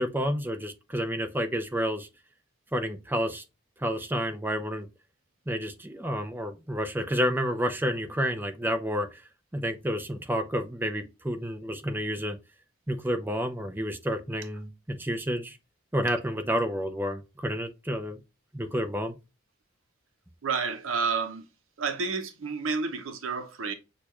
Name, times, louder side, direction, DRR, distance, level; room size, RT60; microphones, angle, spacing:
voice 1, 0.0-2.1 2.7-3.4 3.8-4.9 5.5-9.2 9.5-12.4 12.9-15.6 15.9-18.2 18.5-19.2, equal, 10° right, 0.5 m, -30 dB
voice 2, 20.4-21.5 21.8-23.7, right 5 dB, 70° right, 0.7 m, -30 dB
6.6 x 2.3 x 3.0 m
head